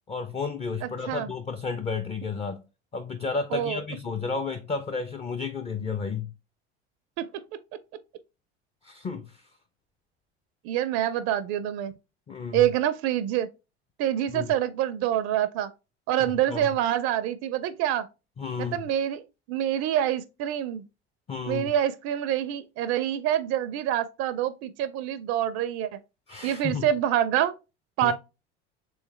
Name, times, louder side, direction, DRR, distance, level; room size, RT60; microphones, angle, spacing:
voice 1, 0.1-2.6 2.9-6.3 8.8-9.3 12.3-12.6 14.3-14.5 16.2-16.7 18.4-18.8 21.3-21.7 26.3-26.9 28.0-28.1, left 4 dB, 20° left, 0.4 m, -32 dB
voice 2, 0.8-1.3 3.5-3.8 7.2-7.4 10.6-11.9 12.5-13.5 14.0-15.7 16.1-18.1 18.6-20.8 21.5-26.0 26.4-27.5 28.0-28.1, right 11 dB, 50° right, 0.4 m, -26 dB
3.3 x 3.1 x 3.2 m
hypercardioid pair, 70°, 32 cm